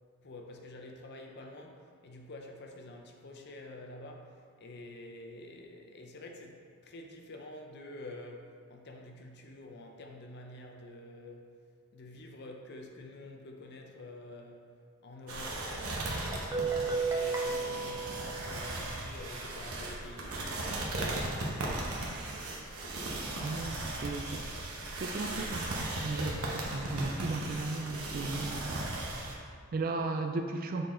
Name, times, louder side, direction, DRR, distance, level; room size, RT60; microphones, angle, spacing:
voice 1, 0.2-11.6 11.9-14.7 15.0-16.3 16.8-20.6, left 2 dB, 50° left, 2 dB, 0.6 m, -48 dB
sound 1, 15.3-29.3, right 2 dB, 85° right, 1.0 m, -37 dB
Guitar, 16.1-18.9, right 4 dB, 15° right, 0.7 m, -34 dB
voice 2, 23.4-24.4 25.0-28.8 29.3-30.9, right 3 dB, 40° right, 5 dB, 0.4 m, -36 dB
6.6 x 4.1 x 3.7 m, 2.2 s
head